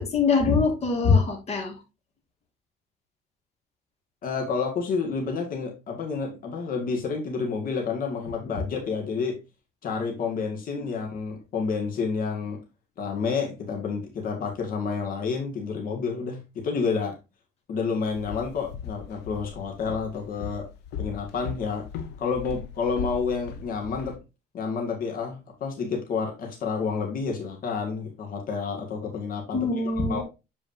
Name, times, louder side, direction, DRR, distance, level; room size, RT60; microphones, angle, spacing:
voice 1, 0.0-1.8 29.5-30.2, left 4 dB, 40° left, 2.1 m, -23 dB
voice 2, 4.2-9.4 9.8-12.6 13.0-17.2 17.7-20.7 21.0-21.9 22.2-24.2 24.5-30.2, left 5 dB, 55° left, 2.0 m, -29 dB
Walk footsteps, 18.0-24.2, left 7 dB, 85° left, 1.3 m, -38 dB
7.4 x 4.8 x 2.7 m
cardioid pair, 110°, 17 cm